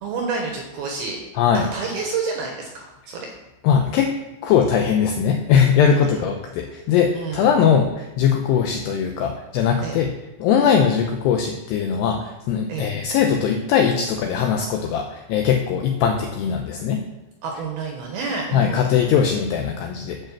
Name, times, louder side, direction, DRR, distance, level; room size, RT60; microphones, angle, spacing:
voice 1, 0.0-1.2 1.7-3.3 5.9-6.2 7.1-7.5 9.8-10.0 10.6-10.8 12.7-12.9 17.4-19.0, right 4 dB, 70° right, 1 dB, 2.5 m, -29 dB
voice 2, 1.4-1.7 3.6-4.1 4.4-10.1 10.4-17.1 18.5-20.2, left 7 dB, 90° left, 4 dB, 2.4 m, -20 dB
11.0 x 5.2 x 7.4 m, 0.99 s
omnidirectional pair, 5.7 m